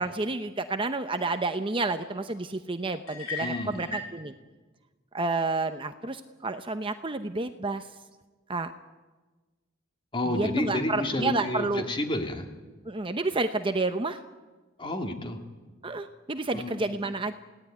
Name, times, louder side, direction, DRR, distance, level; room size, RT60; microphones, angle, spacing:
voice 1, 0.0-4.3 5.1-7.8 8.5-8.7 10.3-11.9 12.9-14.2 15.8-17.3, right 3 dB, 25° right, 8 dB, 0.8 m, -30 dB
sound 1, 3.1-4.2, left 3 dB, 85° left, 6.6 m, -36 dB
voice 2, 3.4-3.9 10.1-12.5 14.8-15.4 16.5-16.8, left 1 dB, 25° left, 4 dB, 2.6 m, -30 dB
29.0 x 17.0 x 9.3 m, 1.3 s
head